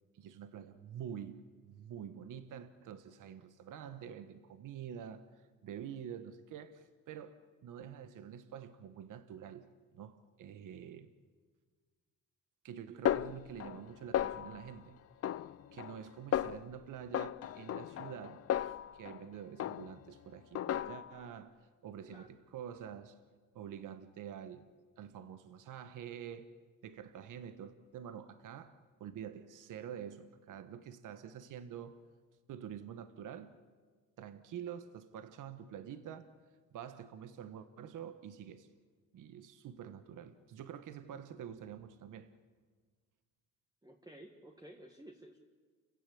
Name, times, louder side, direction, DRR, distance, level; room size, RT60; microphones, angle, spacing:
voice 1, 0.1-7.4 7.6-9.7 9.9-11.1 12.6-15.0 15.7-21.5 21.8-23.2 23.5-24.7 25.0-26.5 26.8-32.0 32.5-33.5 34.2-36.3 36.7-38.7 39.1-42.3, right 8 dB, 70° right, 1.3 m, -47 dB
Snare drum, 13.1-13.9 14.1-14.7 15.2-16.0 16.3-16.7 17.1-19.2 19.6-20.1 20.6-21.2, left 11 dB, 45° left, 0.6 m, -35 dB
voice 2, 43.8-45.4, right 1 dB, 10° right, 1.8 m, -53 dB
30.0 x 15.5 x 8.5 m
cardioid pair, 110°, 32 cm